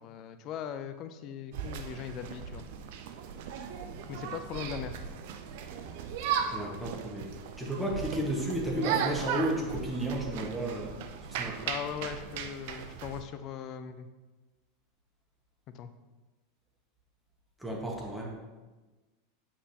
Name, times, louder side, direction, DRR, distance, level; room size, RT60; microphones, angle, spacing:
voice 1, 0.0-2.6 4.1-5.0 11.6-14.1 15.7-15.9, left 8 dB, 45° left, 10 dB, 0.5 m, -39 dB
sound 1, 1.5-13.2, right 7 dB, 60° right, 0.6 m, -37 dB
voice 2, 6.5-11.0 11.4-11.6 17.6-18.3, right 1 dB, 5° right, -2 dB, 1.5 m, -33 dB
7.9 x 5.8 x 2.9 m, 1.2 s
hypercardioid pair, 85°, 0 cm